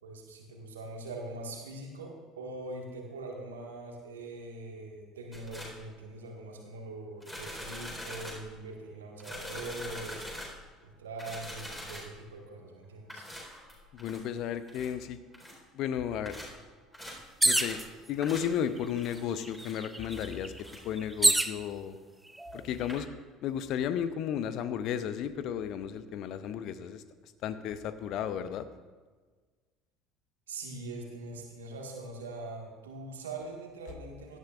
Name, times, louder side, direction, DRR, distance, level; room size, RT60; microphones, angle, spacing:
voice 1, 0.0-10.2 10.8-13.2 30.5-34.4, right 2 dB, 75° right, 1 dB, 1.7 m, -42 dB
sound 1, 5.3-5.8 7.2-8.5 9.2-10.7 11.2-12.2 13.1-14.2 14.7-14.9 15.3-15.6 16.2-16.6 16.9-17.2 17.5-17.9 18.2-18.6 19.0-19.2 19.5-19.8 20.0-20.3 20.6-20.8 22.5-22.6 22.8-23.0, left 1 dB, 10° left, 4.1 m, -43 dB
voice 2, 13.9-15.2 15.7-16.4 17.4-17.8 18.1-22.0 22.5-23.1 23.4-27.0 27.4-28.7, left 9 dB, 50° left, 12 dB, 0.6 m, -33 dB
sound 2, 17.4-17.8 18.8-18.9 19.2-21.6 22.3-22.8, right 2 dB, 10° right, 0.6 m, -27 dB
17.0 x 12.0 x 2.5 m, 1.4 s
figure-of-eight pair, 60°, 0 cm